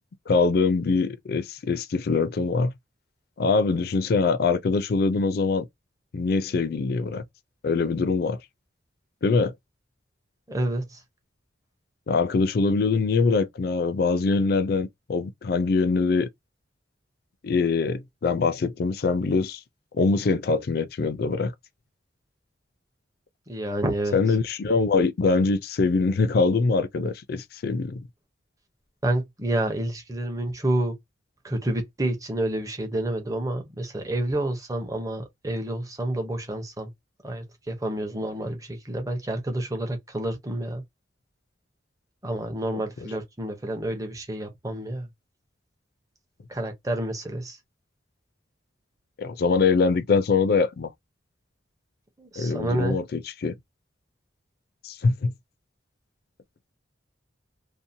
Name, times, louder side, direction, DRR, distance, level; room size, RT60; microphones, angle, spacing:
voice 1, 0.3-2.7 3.4-5.7 6.1-7.2 7.6-8.4 9.2-9.5 12.1-16.3 17.4-19.6 19.9-21.5 24.1-28.0 49.2-50.9 52.4-53.5 54.8-55.3, left 4 dB, 55° left, 0.4 m, -23 dB
voice 2, 10.5-11.0 23.5-24.2 29.0-31.0 31.4-36.9 37.2-40.8 42.2-45.1 46.5-47.6 52.2-53.0, right 1 dB, 20° right, 0.6 m, -29 dB
2.7 x 2.1 x 2.6 m
head